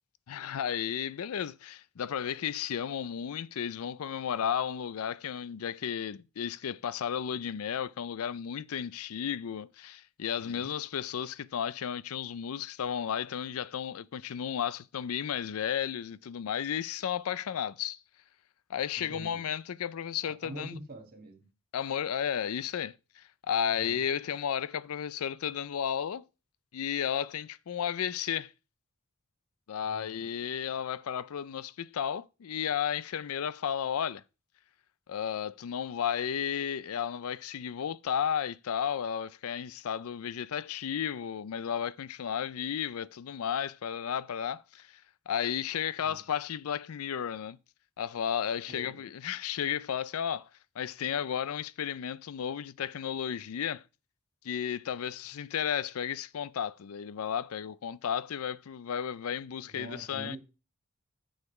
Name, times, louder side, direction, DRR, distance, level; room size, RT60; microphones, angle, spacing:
voice 1, 0.3-18.0 18.7-20.8 21.7-26.3 26.7-28.5 29.7-34.2 35.1-45.0 45.3-47.6 48.0-50.5 50.8-53.8 54.4-60.4, left 8 dB, 80° left, 0.4 m, -33 dB
voice 2, 10.3-10.7 19.0-19.4 20.2-21.5 23.7-24.0 29.8-30.2 46.0-46.2 48.7-49.0 59.6-60.4, right 2 dB, 45° right, 2.4 m, -46 dB
9.7 x 6.5 x 4.8 m
head